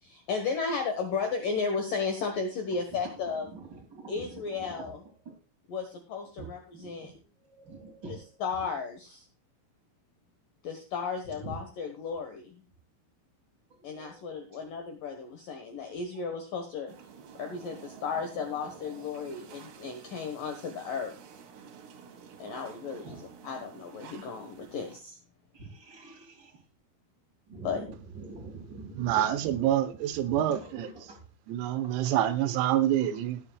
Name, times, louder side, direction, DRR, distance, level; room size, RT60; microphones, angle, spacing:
voice 1, 0.0-3.5 4.1-5.0 5.7-7.1 8.4-9.3 10.6-12.6 13.8-16.9 17.4-21.2 22.4-23.2 23.4-25.2 27.6-27.9, left 5 dB, 70° left, 2.0 m, -34 dB
voice 2, 2.7-5.4 6.4-8.7 11.3-11.6 13.7-14.2 14.5-14.7 23.0-23.3 25.5-26.7 27.5-31.3 31.8-32.2, right 3 dB, 30° right, 2.1 m, -46 dB
sound 1, 16.9-25.0, right 6 dB, 65° right, 3.3 m, -50 dB
voice 3, 29.0-30.9 31.5-33.4, right 12 dB, 90° right, 3.8 m, -27 dB
19.0 x 8.6 x 2.3 m
omnidirectional pair, 6.0 m